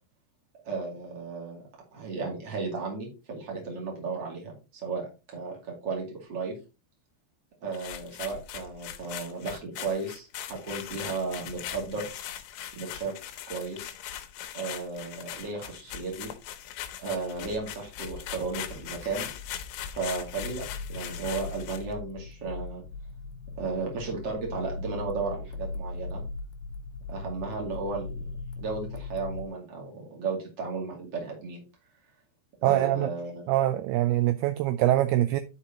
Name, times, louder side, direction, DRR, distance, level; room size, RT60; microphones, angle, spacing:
voice 1, 0.6-1.6 1.9-4.5 4.8-6.6 7.6-12.0 12.7-13.1 13.5-13.9 14.5-16.3 17.0-19.3 19.9-22.8 23.6-26.2 27.1-28.3 28.6-31.6 32.6-33.4, right 4 dB, 35° right, 2.4 m, -34 dB
sound 1, 7.7-21.9, left 11 dB, 90° left, 3.0 m, -40 dB
sound 2, 20.3-29.5, left 3 dB, 70° left, 2.5 m, -39 dB
voice 2, 32.6-33.1 33.5-35.4, right 14 dB, 85° right, 2.3 m, -24 dB
12.0 x 5.0 x 2.9 m
omnidirectional pair, 4.8 m